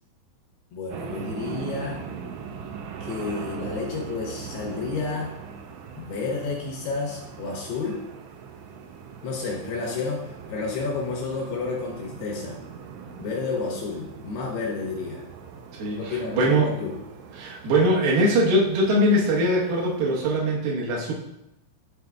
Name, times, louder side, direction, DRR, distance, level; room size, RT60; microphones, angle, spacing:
voice 1, 0.7-2.0 3.0-5.3 6.0-8.0 9.2-12.6 13.2-15.2 16.0-17.0, left 4 dB, 70° left, -2 dB, 2.6 m, -31 dB
sound 1, 0.9-20.4, right 6 dB, 85° right, 2.6 m, -40 dB
voice 2, 15.8-16.7 17.4-21.1, right 1 dB, 65° right, -3 dB, 2.6 m, -22 dB
11.5 x 4.4 x 2.3 m, 0.86 s
omnidirectional pair, 5.4 m